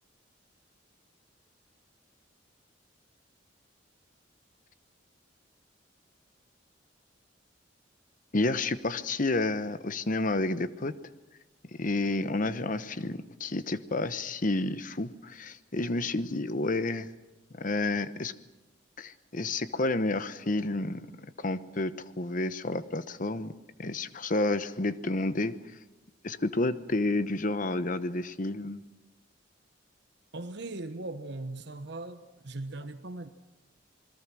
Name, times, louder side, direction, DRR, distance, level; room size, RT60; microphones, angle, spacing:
voice 1, 8.3-10.9 11.7-17.1 17.5-18.3 19.0-21.1 21.4-23.5 23.8-25.6 26.2-28.8, left 2 dB, 45° left, 13 dB, 1.0 m, -30 dB
voice 2, 30.3-33.3, right 2 dB, 60° right, 8 dB, 1.2 m, -39 dB
27.5 x 21.5 x 6.2 m, 1.1 s
head